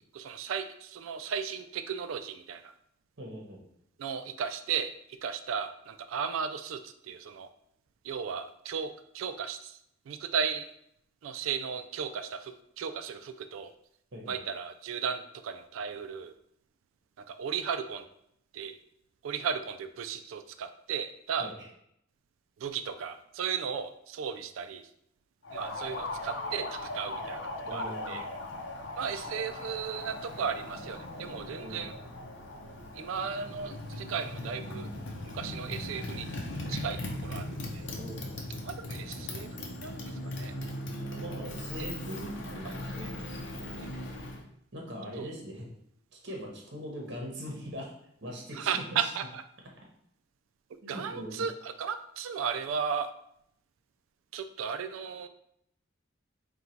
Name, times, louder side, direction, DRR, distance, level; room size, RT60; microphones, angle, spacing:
voice 1, 0.1-2.7 4.0-4.9 5.2-7.5 8.0-9.8 10.1-10.7 11.2-13.7 14.3-16.3 17.3-18.0 18.5-18.8 19.2-21.5 22.6-24.9 25.5-28.3 29.0-31.9 32.9-34.9 35.3-36.3 36.7-37.9 38.7-40.5 41.1-41.2 42.6-42.7 43.0-43.1 43.8-43.9 45.2-45.3 48.5-49.4 50.9-53.1 54.3-55.3, right 7 dB, 90° right, 9 dB, 0.3 m, -35 dB
voice 2, 3.2-3.6 14.1-14.4 21.4-21.7 27.7-28.2 31.6-31.9 38.0-38.4 41.2-43.5 44.7-45.7 46.1-47.9 48.2-49.1 50.8-51.4, equal, 60° right, 0 dB, 0.9 m, -41 dB
Motorcycle, 25.4-44.4, left 1 dB, 65° left, 0.6 m, -39 dB
3.8 x 2.3 x 4.4 m, 0.73 s
head